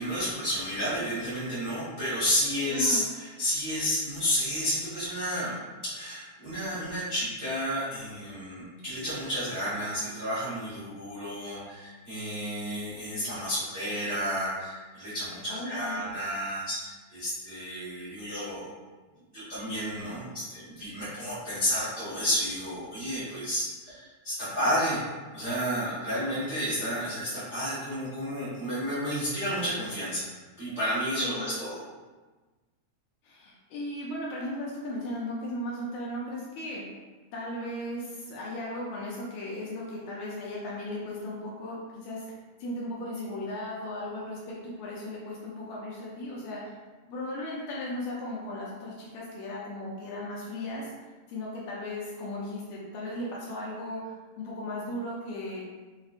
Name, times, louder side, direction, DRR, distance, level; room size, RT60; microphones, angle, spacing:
voice 1, 0.0-5.5 5.8-18.7 19.3-25.0 25.3-30.2 30.6-31.8, equal, 80° right, -11 dB, 0.6 m, -31 dB
voice 2, 2.7-3.1 15.5-16.1 31.2-31.4 33.2-36.8 37.3-42.3 42.6-46.7 47.1-50.9 51.3-55.6, left 1 dB, 75° left, -4 dB, 1.8 m, -36 dB
5.4 x 2.4 x 2.4 m, 1.3 s
omnidirectional pair, 3.7 m